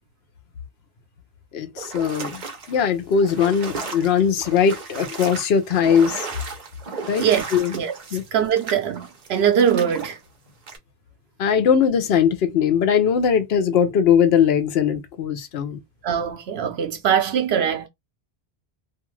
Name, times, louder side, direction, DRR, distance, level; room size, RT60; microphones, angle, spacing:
voice 1, 1.5-2.4 2.7-6.3 7.1-7.3 7.5-7.7 8.1-8.2 11.4-15.8, left 7 dB, 80° left, 0.9 m, -20 dB
sound 1, 1.8-10.1 10.7-10.8, right 4 dB, 50° right, 0.8 m, -35 dB
voice 2, 8.3-10.2 16.0-17.9, right 8 dB, 85° right, 0.9 m, -21 dB
2.5 x 2.4 x 3.1 m
omnidirectional pair, 1.0 m